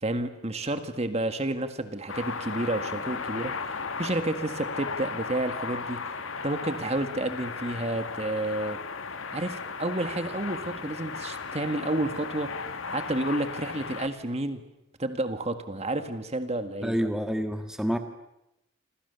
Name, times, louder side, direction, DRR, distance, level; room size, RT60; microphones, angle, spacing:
voice 1, 0.0-3.5 4.0-6.0 6.4-8.8 9.3-12.5 12.9-14.6 15.0-17.0, right 1 dB, 30° right, 8 dB, 1.8 m, -30 dB
sound 1, 2.1-14.1, left 4 dB, 75° left, 1.9 m, -36 dB
voice 2, 16.8-18.0, equal, 5° right, 6 dB, 1.6 m, -28 dB
28.0 x 27.0 x 7.0 m, 0.88 s
head